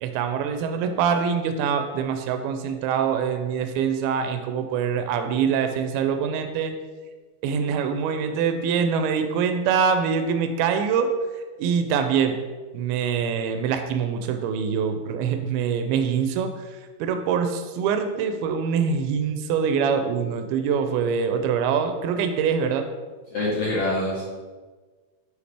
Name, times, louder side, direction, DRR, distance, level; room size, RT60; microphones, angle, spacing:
voice 1, 0.0-6.7 7.4-12.4 12.7-22.9, right 6 dB, 85° right, 7 dB, 2.4 m, -24 dB
voice 2, 23.3-24.2, left 2 dB, 65° left, -7 dB, 1.6 m, -25 dB
6.5 x 5.0 x 3.4 m, 1.4 s
omnidirectional pair, 4.4 m